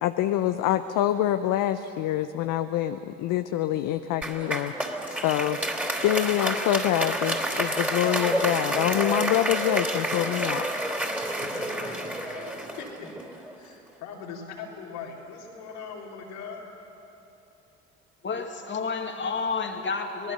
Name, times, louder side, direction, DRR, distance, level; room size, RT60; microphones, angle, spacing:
voice 1, 0.0-4.7 5.2-5.6 6.0-10.7, left 12 dB, 65° left, 9 dB, 0.8 m, -25 dB
Applause, 4.2-13.6, right 1 dB, 5° right, 3.4 m, -29 dB
voice 2, 11.3-13.1 13.5-16.7, left 5 dB, 85° left, -3 dB, 3.8 m, -41 dB
voice 3, 18.2-20.3, left 4 dB, 35° left, 3 dB, 2.3 m, -30 dB
26.5 x 19.0 x 6.8 m, 2.9 s
hypercardioid pair, 60°, 33 cm